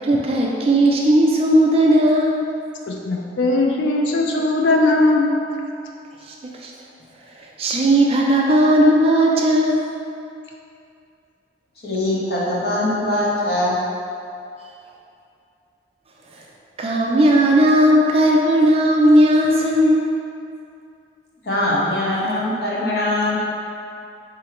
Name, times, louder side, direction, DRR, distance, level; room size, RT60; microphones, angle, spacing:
voice 1, 0.0-2.4 6.3-6.7 7.4-9.9 16.3-16.4 16.8-20.1, right 1 dB, 30° right, -2 dB, 0.3 m, -16 dB
voice 2, 2.9-5.3, left 2 dB, 80° left, 0 dB, 0.4 m, -19 dB
voice 3, 11.8-13.8 21.4-23.4, left 1 dB, 60° left, -6 dB, 0.8 m, -22 dB
3.7 x 2.0 x 4.3 m, 2.5 s
head